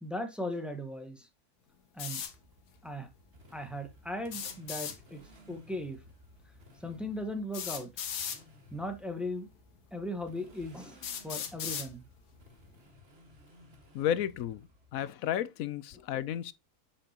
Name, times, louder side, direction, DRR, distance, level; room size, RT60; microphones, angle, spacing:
voice 1, 0.0-1.3 1.9-2.2 2.8-3.1 3.5-5.2 5.5-6.0 6.8-7.9 8.7-9.5 9.9-12.0, left 1 dB, ahead, 1.0 m, -38 dB
sound 1, 2.0-2.3 4.3-5.0 6.4-6.5 7.5-8.4 9.4-9.5 10.2-10.3 11.0-11.9, left 8 dB, 90° left, 1.5 m, -37 dB
Motorcycle, 2.2-15.1, left 1 dB, 40° right, 1.9 m, -57 dB
voice 2, 13.9-14.6 14.9-16.5, left 10 dB, 70° left, 1.0 m, -32 dB
7.8 x 5.7 x 2.9 m
omnidirectional pair, 1.6 m